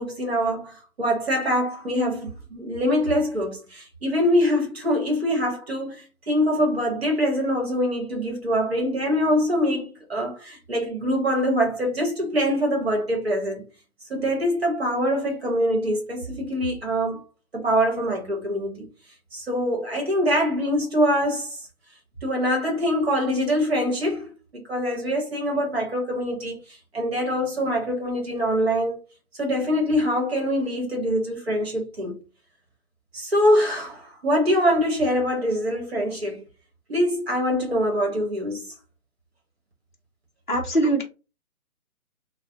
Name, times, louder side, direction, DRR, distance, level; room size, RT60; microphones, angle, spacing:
voice 1, 0.0-13.6 14.1-17.2 17.5-18.9 19.3-21.6 22.2-29.0 29.4-32.2 33.1-36.4 36.9-38.7 40.8-40.9, equal, 45° right, 1.0 m, -24 dB
voice 2, 40.5-41.0, right 1 dB, 35° left, 0.5 m, -21 dB
2.3 x 2.1 x 2.7 m
hypercardioid pair, 175°, 44 cm